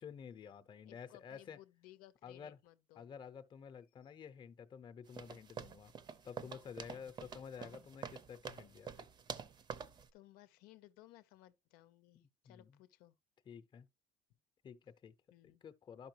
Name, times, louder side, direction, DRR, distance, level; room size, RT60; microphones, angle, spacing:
voice 1, 0.0-1.6 2.2-2.6 2.9-5.9 6.2-9.1 12.1-12.8 13.4-13.9 14.6-15.1 15.4-16.1, left 7 dB, 30° left, 0.8 m, -51 dB
voice 2, 0.9-3.1 4.0-4.1 7.6-7.9 10.1-13.2 15.3-15.6, left 15 dB, 80° left, 0.7 m, -61 dB
sound 1, 5.1-10.1, right 6 dB, 30° right, 0.7 m, -48 dB
11.5 x 5.6 x 2.9 m
cardioid pair, 145°, 15 cm